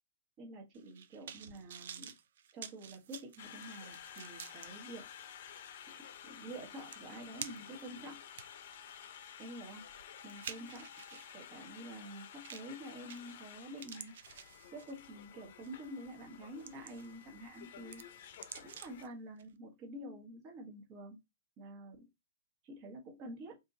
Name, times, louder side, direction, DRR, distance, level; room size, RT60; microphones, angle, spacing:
voice 1, 0.4-2.1 2.5-5.1 5.9-8.2 9.4-9.8 10.2-10.9 11.1-14.1 14.7-18.0 18.6-21.2 21.6-22.1 22.6-23.6, right 1 dB, 35° right, 1.3 m, -48 dB
sound 1, 0.7-4.7 5.2-5.3 6.5-6.6 6.9-7.8 8.3-11.4 12.4-12.8 13.1-13.5 13.8-15.1 15.6-15.8 16.3-17.2 17.5-19.1 19.4-19.5, right 8 dB, 65° right, 0.4 m, -49 dB
Conversation, 3.4-19.0, left 9 dB, 55° left, 0.6 m, -52 dB
2.8 x 2.8 x 3.6 m
hypercardioid pair, 140°, 0 cm